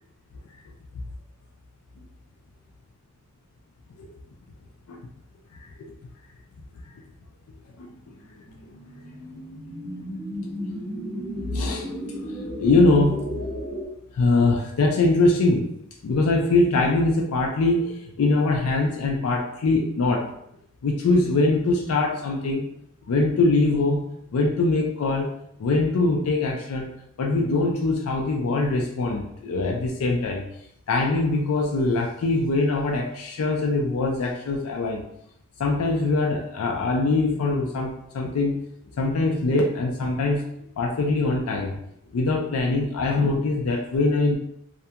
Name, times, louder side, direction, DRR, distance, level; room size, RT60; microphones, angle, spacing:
voice 1, 7.8-8.2 11.5-11.9 12.2-13.2 14.1-15.7 16.0-20.3 20.8-22.7 23.1-24.0 24.3-25.3 25.6-26.9 27.2-30.4 30.9-35.0 35.6-38.6 39.0-40.4 40.8-41.7 42.1-44.4, left 2 dB, 85° left, 0 dB, 0.4 m, -22 dB
sound 1, 8.3-13.9, equal, 15° left, 0.6 m, -34 dB
2.4 x 2.2 x 2.7 m, 0.75 s
head